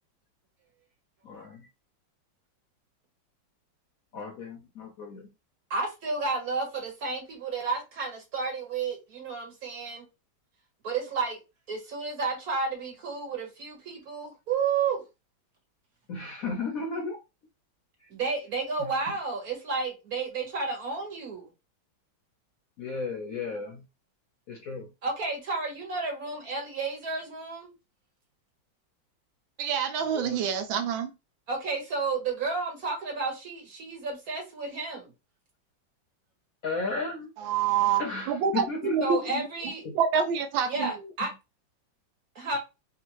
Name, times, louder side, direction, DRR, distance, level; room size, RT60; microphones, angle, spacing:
voice 1, 1.2-1.7 4.1-5.3 16.1-17.2 18.0-18.1 22.8-23.8 24.5-24.9 30.0-30.4 36.6-37.3 38.0-39.4 39.8-40.0, left 4 dB, 65° left, 0.9 m, -34 dB
voice 2, 5.7-10.1 10.8-11.4 11.7-15.0 18.1-21.5 25.0-27.7 31.5-35.1 39.0-39.8 40.6-41.3 42.3-42.6, right 4 dB, 50° right, 1.5 m, -31 dB
voice 3, 29.6-31.1 37.4-38.0 38.3-39.5 39.9-40.9, right 7 dB, 80° right, 1.3 m, -27 dB
3.6 x 2.5 x 2.9 m
omnidirectional pair, 2.2 m